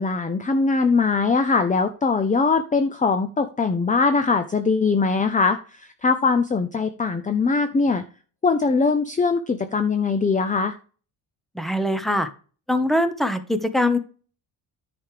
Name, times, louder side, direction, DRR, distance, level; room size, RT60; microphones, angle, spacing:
voice 1, 0.0-8.0 8.4-10.7, left 4 dB, 15° left, 0.6 m, -21 dB
voice 2, 11.5-12.3 12.7-14.0, left 1 dB, ahead, 1.0 m, -22 dB
10.0 x 5.1 x 5.0 m
cardioid pair, 135°, 48 cm